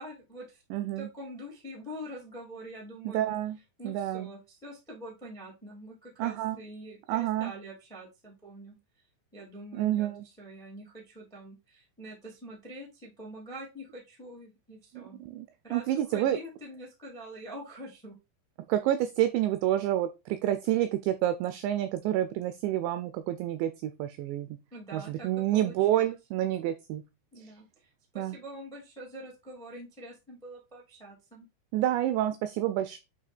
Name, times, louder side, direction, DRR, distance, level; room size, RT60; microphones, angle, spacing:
voice 1, 0.0-0.6 0.9-3.4 3.8-8.7 9.3-10.1 10.4-15.2 15.6-18.1 24.7-26.2 27.3-31.5, right 1 dB, ahead, -2 dB, 1.0 m, -45 dB
voice 2, 0.7-1.1 3.1-3.6 3.8-4.3 6.2-6.6 7.1-7.5 9.7-10.2 14.9-16.4 18.7-24.5 24.9-27.0 27.4-27.5 28.2-28.4 31.7-33.0, right 12 dB, 90° right, 10 dB, 2.5 m, -29 dB
8.5 x 2.8 x 4.3 m, 0.25 s
omnidirectional pair, 5.7 m